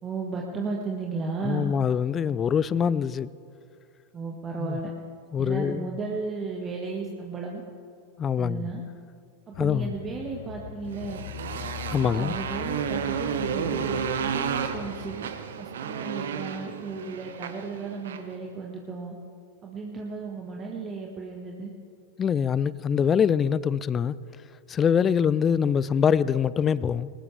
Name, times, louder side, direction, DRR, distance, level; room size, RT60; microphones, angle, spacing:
voice 1, 0.0-1.7 4.1-4.9 5.4-7.6 8.4-8.8 9.5-11.2 12.0-15.2 15.6-19.1 19.6-21.7, right 4 dB, 25° right, 1.6 m, -34 dB
voice 2, 1.4-3.3 4.6-4.8 5.3-5.9 8.2-8.7 9.6-9.9 11.9-12.4 22.2-24.2 24.7-27.1, left 7 dB, 25° left, 0.4 m, -24 dB
sound 1, 9.5-15.2, left 10 dB, 55° left, 0.7 m, -41 dB
Motorcycle, 10.9-18.3, right 7 dB, 60° right, 1.1 m, -32 dB
21.0 x 19.0 x 3.4 m
figure-of-eight pair, 90°, 0 cm